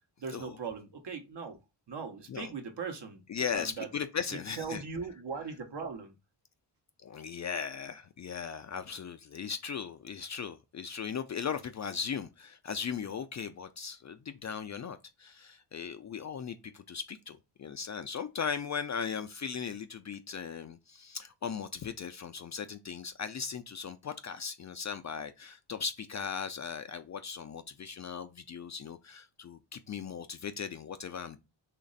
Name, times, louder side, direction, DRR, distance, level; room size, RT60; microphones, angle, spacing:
voice 1, 0.2-1.6 1.9-3.2 3.5-3.9 4.3-6.1, right 5 dB, 55° right, 1.1 m, -39 dB
voice 2, 3.3-4.8 7.0-31.4, left 6 dB, 40° left, 0.4 m, -38 dB
3.1 x 2.5 x 3.9 m
cardioid pair, 55°, 50 cm